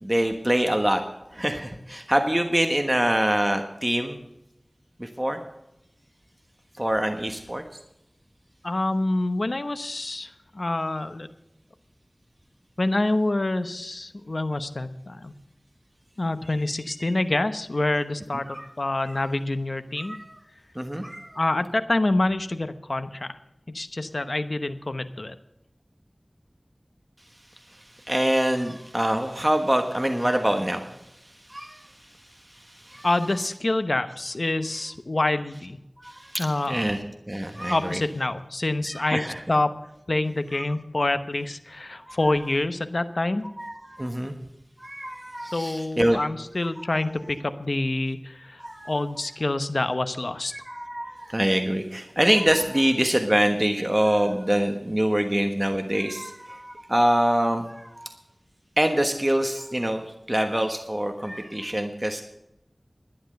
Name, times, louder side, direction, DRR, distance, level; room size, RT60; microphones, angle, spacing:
voice 1, 0.0-1.0 1.3-4.2 5.0-5.4 6.8-7.6 17.0-17.1 18.5-18.7 19.0-19.3 20.0-20.3 20.7-21.4 27.7-33.1 36.0-37.0 37.3-38.0 38.9-39.4 40.5-40.6 42.0-42.2 43.6-44.4 44.8-46.2 46.8-46.9 48.6-48.9 50.5-58.1 58.8-62.2, right 1 dB, 20° right, 5 dB, 1.3 m, -25 dB
voice 2, 8.6-11.3 12.8-15.3 16.2-20.2 21.4-23.3 23.7-25.3 33.0-35.8 36.4-36.8 37.7-39.8 40.1-43.4 45.5-48.6 48.9-50.5, left 2 dB, 65° left, 10 dB, 1.0 m, -26 dB
12.0 x 10.0 x 6.5 m, 0.86 s
wide cardioid pair, 50°, 0 cm